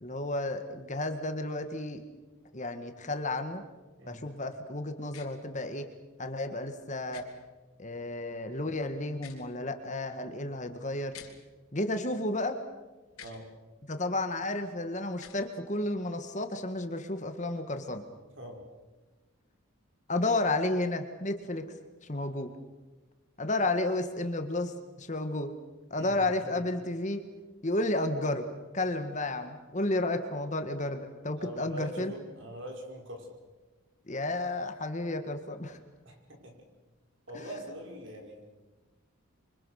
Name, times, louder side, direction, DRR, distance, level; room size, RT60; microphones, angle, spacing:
voice 1, 0.0-2.0 2.5-3.6 4.1-5.9 6.2-7.2 7.8-11.1 11.7-12.6 13.9-18.0 20.1-21.7 22.1-22.5 23.4-25.5 25.9-27.2 27.6-28.5 28.7-32.1 34.1-35.8, left 2 dB, 35° left, 7 dB, 1.8 m, -32 dB
sound 1, 5.1-5.3 7.1-7.3 9.1-9.5 11.1-11.3 13.1-13.4 15.1-15.4, left 8 dB, 90° left, 3.7 m, -48 dB
voice 2, 26.0-26.5 31.4-33.3 36.0-36.5 37.3-38.4, equal, 55° right, 2 dB, 5.6 m, -43 dB
27.5 x 25.0 x 6.6 m, 1.2 s
head